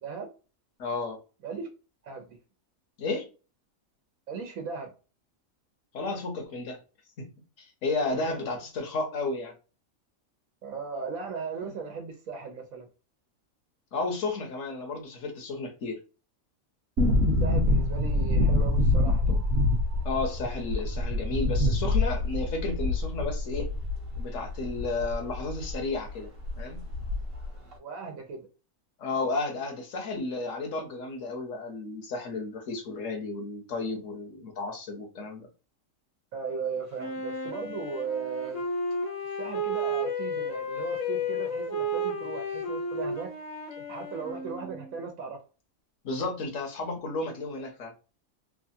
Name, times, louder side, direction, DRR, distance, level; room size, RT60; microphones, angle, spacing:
voice 1, 0.8-1.2 3.0-3.3 5.9-6.8 7.2-7.3 7.6-9.5 13.9-16.0 20.0-23.7 24.2-26.3 26.6-26.9 29.0-35.5 46.0-47.9, left 3 dB, 70° left, 1.2 m, -32 dB
voice 2, 2.0-2.4 4.3-4.9 8.1-8.4 10.6-12.9 17.4-19.4 27.8-28.5 36.3-38.7 39.4-43.3 43.9-45.4, right 5 dB, 75° right, 1.2 m, -37 dB
sound 1, 17.0-25.8 26.1-26.2 26.4-27.5 27.7-27.8, left 2 dB, 50° right, 1.0 m, -26 dB
Wind instrument woodwind instrument, 37.0-45.0, equal, 40° left, 0.7 m, -32 dB
3.3 x 2.3 x 2.7 m
omnidirectional pair, 1.4 m